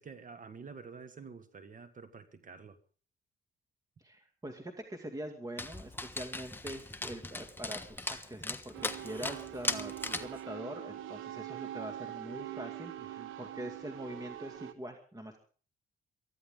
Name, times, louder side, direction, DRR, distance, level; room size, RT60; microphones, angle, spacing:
voice 1, 0.0-2.8 13.2-13.3, right 5 dB, 40° right, 1.7 m, -49 dB
voice 2, 4.0-15.4, right 1 dB, 20° right, 2.3 m, -44 dB
Dog, 5.6-10.4, left 2 dB, 10° left, 1.3 m, -38 dB
sound 1, 8.7-14.7, right 12 dB, 85° right, 1.2 m, -43 dB
23.0 x 14.0 x 3.8 m
cardioid pair, 90°, 20 cm